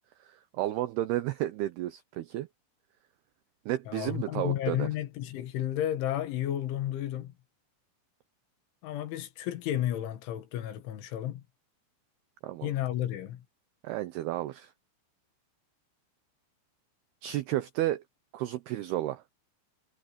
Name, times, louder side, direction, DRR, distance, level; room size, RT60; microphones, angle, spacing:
voice 1, 0.3-2.5 3.7-4.9 12.4-12.7 13.8-14.7 17.2-18.0 18.3-19.2, right 14 dB, 85° right, 2.3 m, -32 dB
voice 2, 3.9-7.3 8.8-11.4 12.6-13.4, left 12 dB, 75° left, 4.0 m, -32 dB
omnidirectional pair, 5.6 m